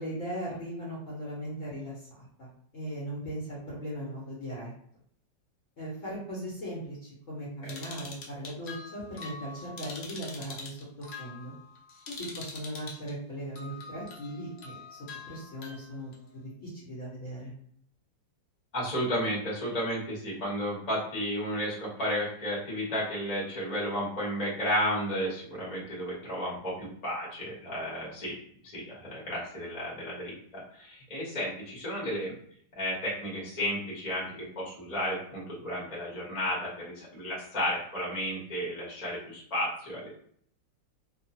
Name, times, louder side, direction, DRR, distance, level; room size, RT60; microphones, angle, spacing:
voice 1, 0.0-4.7 5.8-11.5 12.1-15.0 15.3-17.5, equal, 50° left, -6 dB, 1.2 m, -38 dB
sound 1, 7.6-13.1 13.5-16.2, left 4 dB, 90° left, 0.5 m, -44 dB
voice 2, 18.7-28.3 28.6-32.3 32.8-40.1, equal, 25° left, -5 dB, 1.0 m, -33 dB
2.9 x 2.3 x 2.8 m, 0.63 s
omnidirectional pair, 1.9 m